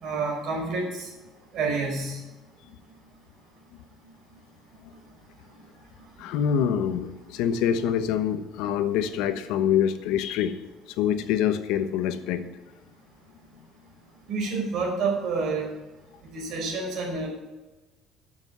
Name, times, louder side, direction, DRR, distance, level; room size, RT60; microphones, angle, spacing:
voice 1, 0.0-1.1 1.5-2.2 14.3-15.6 16.3-17.3, right 4 dB, 45° right, -1 dB, 4.7 m, -28 dB
voice 2, 6.2-10.6 11.0-12.4, left 9 dB, 80° left, 10 dB, 1.1 m, -25 dB
11.0 x 7.2 x 8.0 m, 1.1 s
cardioid pair, 175°, 0 cm